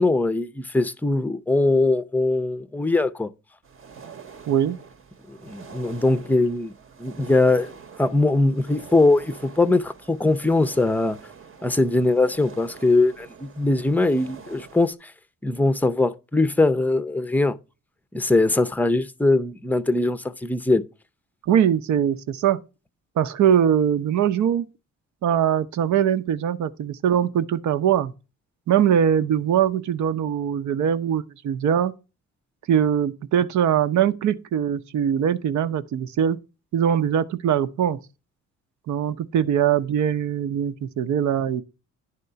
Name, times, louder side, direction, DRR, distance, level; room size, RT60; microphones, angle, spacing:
voice 1, 0.0-3.3 5.3-6.7 7.0-7.7 8.0-11.2 11.6-15.1 15.4-17.6 18.1-20.8, left 2 dB, 5° left, 0.6 m, -21 dB
sound 1, 3.6-14.9, right 6 dB, 45° right, 1.0 m, -45 dB
voice 2, 4.5-4.8 21.5-22.6 23.2-24.7 25.2-28.1 28.7-31.9 32.7-36.4 36.7-38.0 38.9-41.6, right 9 dB, 70° right, 0.8 m, -22 dB
11.0 x 3.7 x 6.7 m
cardioid pair, 90°, 30 cm